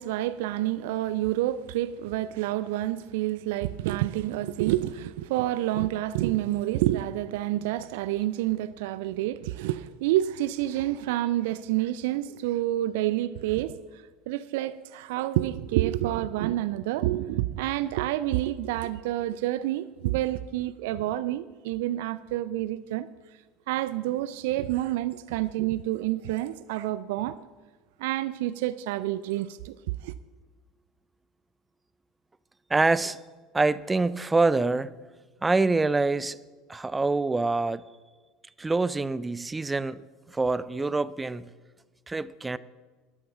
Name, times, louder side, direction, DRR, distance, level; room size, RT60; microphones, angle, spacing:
voice 1, 0.0-23.1 23.7-27.4 28.0-29.8 30.0-30.1, right 14 dB, 60° right, 0.4 m, -28 dB
voice 2, 32.7-33.2 33.5-34.9 35.4-36.4 36.7-37.8 38.6-40.0 40.3-41.5 42.1-42.6, right 3 dB, 15° right, 0.6 m, -25 dB
12.5 x 12.5 x 7.0 m
figure-of-eight pair, 70°, 0 cm